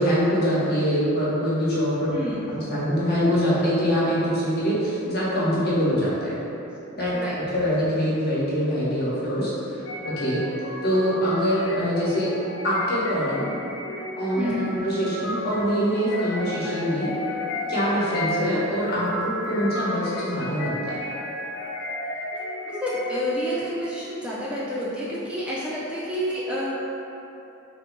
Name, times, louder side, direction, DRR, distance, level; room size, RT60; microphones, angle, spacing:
voice 1, 0.0-2.2 2.5-6.4 6.9-7.1 7.5-9.8 10.0-10.4 10.8-12.3 12.6-13.4 14.2-14.5 14.7-17.1 17.7-21.0, equal, 50° left, -8 dB, 1.1 m, -24 dB
voice 2, 2.1-2.5 7.1-7.4 14.4-14.7 22.7-26.8, equal, 5° right, -8 dB, 0.4 m, -29 dB
sound 1, 9.9-23.5, left 1 dB, 65° left, 0.5 m, -33 dB
3.8 x 2.7 x 3.6 m, 2.9 s
head